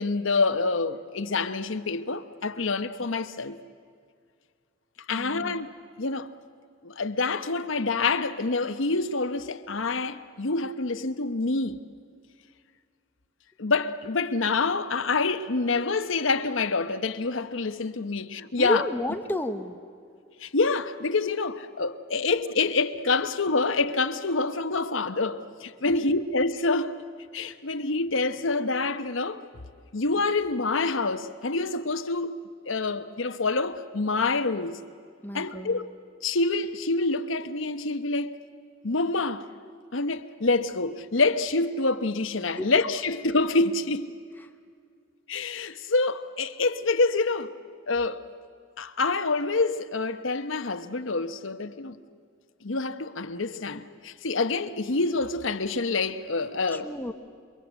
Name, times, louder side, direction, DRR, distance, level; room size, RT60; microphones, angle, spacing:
voice 1, 0.0-3.6 5.1-5.7 6.0-6.3 6.8-11.8 13.6-18.8 20.4-27.0 27.3-29.4 29.9-32.3 32.7-34.8 35.3-35.9 36.2-38.4 38.8-39.5 39.9-44.1 45.3-47.5 47.9-48.2 48.8-52.0 52.6-56.9, left 3 dB, 75° left, 1.0 m, -27 dB
voice 2, 5.1-5.6 18.6-19.8 25.9-26.0 35.2-35.8 42.6-42.8 44.4-44.5 56.7-57.1, left 1 dB, 10° left, 1.1 m, -31 dB
28.0 x 23.5 x 8.2 m
head